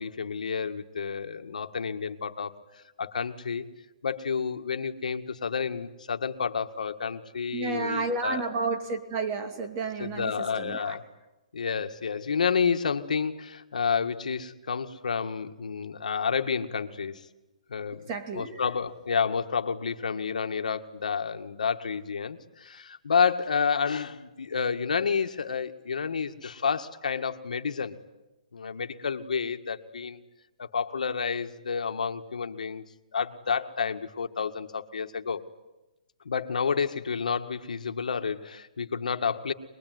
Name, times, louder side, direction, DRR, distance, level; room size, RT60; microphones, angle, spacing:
voice 1, 0.0-2.5 3.0-3.6 4.0-8.6 10.0-11.0 11.5-17.2 17.7-18.1 18.3-28.0 28.5-30.2 30.6-32.8 33.1-35.4 36.3-39.5, left 6 dB, 85° left, 6 dB, 1.9 m, -30 dB
voice 2, 7.5-11.0 18.1-18.6, right 4 dB, 25° right, 7 dB, 2.5 m, -31 dB
25.0 x 21.5 x 9.5 m, 1.0 s
hypercardioid pair, 170°, 4 cm